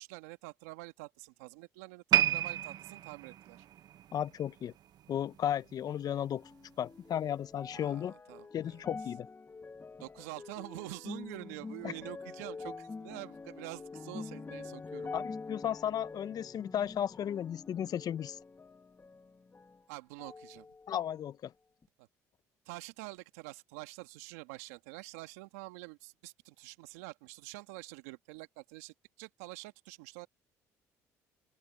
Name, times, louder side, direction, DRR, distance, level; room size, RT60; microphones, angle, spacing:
voice 1, 0.0-3.6 7.7-8.8 10.0-15.1 19.9-20.7 22.0-22.1 22.6-30.3, right 22 dB, 85° right, 1.6 m, -47 dB
sound 1, 2.1-5.4 5.7-6.0 6.6-6.7, right 12 dB, 60° right, 1.1 m, -32 dB
voice 2, 4.1-4.7 5.1-6.4 6.8-8.1 8.5-9.3 11.8-11.9 15.1-18.4 20.9-21.5, left 10 dB, 50° left, 0.9 m, -34 dB
sound 2, 6.4-19.9 20.2-21.1 21.8-21.9, left 4 dB, 25° left, 2.2 m, -46 dB
open air
hypercardioid pair, 65°, 8 cm